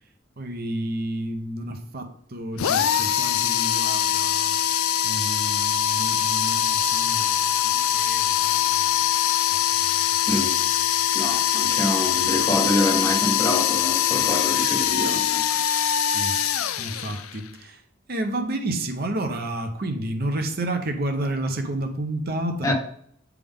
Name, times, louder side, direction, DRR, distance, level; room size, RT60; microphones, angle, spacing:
voice 1, 0.4-4.6 5.0-8.9 9.8-10.9 11.4-11.5 11.8-12.0 16.1-16.4 16.8-17.8 18.1-22.7, right 1 dB, 45° right, 0.8 m, -31 dB
sound 1, 2.6-17.5, left 10 dB, 85° left, 0.4 m, -23 dB
voice 2, 10.3-10.6 11.1-15.8 22.6-22.7, left 1 dB, 15° left, 0.8 m, -26 dB
8.2 x 3.5 x 3.6 m
head